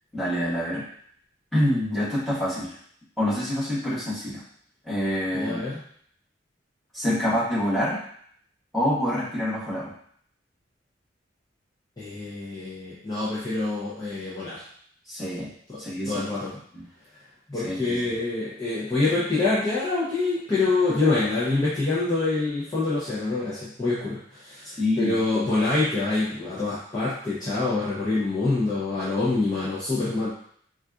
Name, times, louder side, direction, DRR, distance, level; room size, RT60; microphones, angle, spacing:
voice 1, 0.1-0.8 1.5-2.7 3.2-4.4 4.8-5.6 6.9-8.0 8.7-9.9 15.1-15.5 15.8-16.2 16.7-16.8 17.5-18.1 24.6-25.2, left 1 dB, ahead, -11 dB, 1.3 m, -26 dB
voice 2, 5.3-5.8 12.0-14.6 15.7-15.8 16.1-16.5 17.5-30.3, left 3 dB, 20° left, -10 dB, 0.7 m, -26 dB
3.9 x 2.4 x 2.4 m, 0.63 s
head